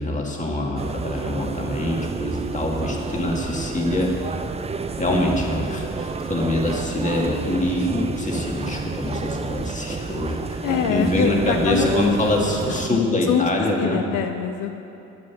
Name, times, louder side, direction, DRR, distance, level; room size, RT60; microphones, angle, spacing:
voice 1, 0.0-4.1 5.0-10.6 10.9-14.0, left 1 dB, 25° left, -1 dB, 2.0 m, -24 dB
sound 1, 0.8-12.9, right 4 dB, 20° right, 0.5 m, -30 dB
voice 2, 10.6-12.1 12.9-13.0 13.3-13.5 13.8-14.7, left 8 dB, 80° left, 6 dB, 0.7 m, -24 dB
9.7 x 8.0 x 7.2 m, 2.9 s
cardioid pair, 90°, 30 cm